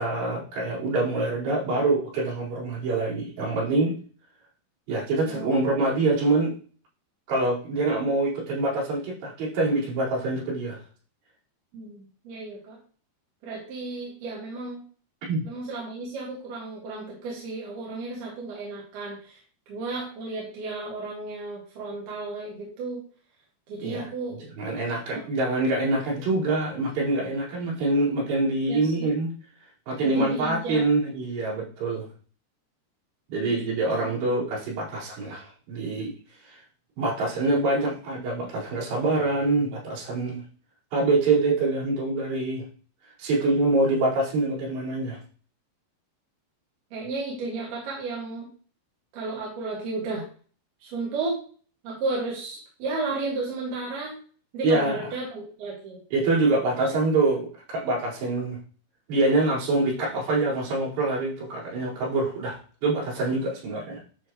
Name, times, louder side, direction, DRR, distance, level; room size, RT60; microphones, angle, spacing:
voice 1, 0.0-4.0 4.9-6.5 7.3-10.8 15.3-15.5 23.8-24.1 24.6-29.3 29.9-32.1 33.3-36.1 36.4-36.6 37.0-40.4 40.9-42.7 43.2-45.2 54.6-54.9 56.1-58.6 59.1-64.0, right 2 dB, 85° right, -8 dB, 6.8 m, -25 dB
voice 2, 5.3-5.7 11.7-12.8 13.4-14.8 15.4-19.4 19.7-23.0 23.7-24.4 28.7-29.2 30.0-30.9 33.4-33.5 33.8-34.1 46.9-48.5 49.1-50.2 50.8-51.4 51.8-54.1 54.5-56.0 56.8-56.9, right 3 dB, 70° right, -4 dB, 4.0 m, -33 dB
12.5 x 4.6 x 3.1 m, 0.41 s
omnidirectional pair, 4.8 m